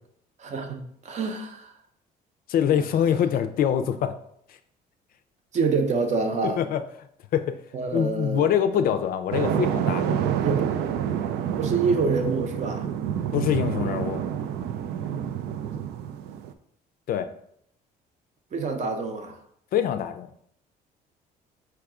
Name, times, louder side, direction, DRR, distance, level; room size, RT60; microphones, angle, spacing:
voice 1, 0.4-1.7 2.7-2.8 5.5-6.6 7.7-8.8 10.4-10.7 11.6-12.9 18.5-19.4, right 4 dB, 45° right, 5 dB, 0.7 m, -27 dB
voice 2, 2.5-4.2 4.5-4.6 6.4-6.8 7.3-7.6 7.9-10.2 13.3-14.2 17.1-17.3 19.7-20.3, left 9 dB, 60° left, 9 dB, 0.4 m, -24 dB
sound 1, 9.3-16.5, right 9 dB, 80° right, 0.4 m, -28 dB
4.6 x 2.3 x 4.8 m, 0.69 s
cardioid pair, 110°, 17 cm